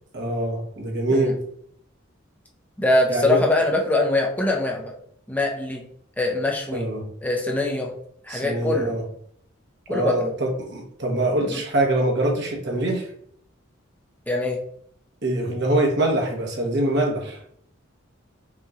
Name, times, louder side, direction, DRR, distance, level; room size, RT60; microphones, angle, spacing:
voice 1, 0.1-1.4 3.1-3.4 6.7-7.0 8.3-9.0 9.9-13.1 15.2-17.4, right 1 dB, 60° right, 0 dB, 1.1 m, -24 dB
voice 2, 2.8-4.8 5.3-5.8 6.2-6.8 7.2-7.9 8.2-9.0 9.9-10.3 14.3-14.6, left 2 dB, 10° left, 0 dB, 0.6 m, -23 dB
5.5 x 3.0 x 2.4 m, 0.64 s
head